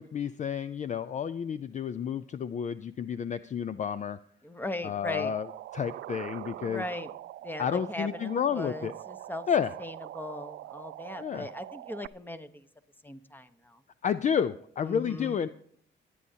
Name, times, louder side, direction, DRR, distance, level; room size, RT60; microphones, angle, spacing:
voice 1, 0.0-4.2 4.8-5.5 5.7-6.9 7.6-8.9 9.5-9.7 11.2-11.5 14.0-15.5, left 8 dB, 40° left, 14 dB, 0.4 m, -30 dB
voice 2, 4.4-5.3 6.6-7.1 7.4-9.5 9.8-12.6 13.0-13.8 14.8-15.4, left 1 dB, 10° left, 11 dB, 1.0 m, -39 dB
sound 1, 5.1-12.1, right 14 dB, 65° right, 0.4 m, -43 dB
24.0 x 9.9 x 2.8 m, 0.63 s
cardioid pair, 90°, 20 cm